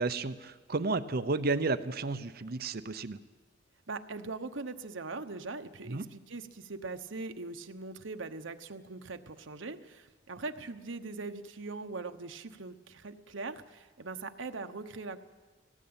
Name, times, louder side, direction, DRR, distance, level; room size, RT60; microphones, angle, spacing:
voice 1, 0.0-3.2 5.9-6.1, right 3 dB, 50° right, 11 dB, 0.8 m, -32 dB
voice 2, 3.9-15.2, right 3 dB, 75° right, 8 dB, 1.1 m, -41 dB
18.0 x 17.5 x 8.8 m, 1.3 s
head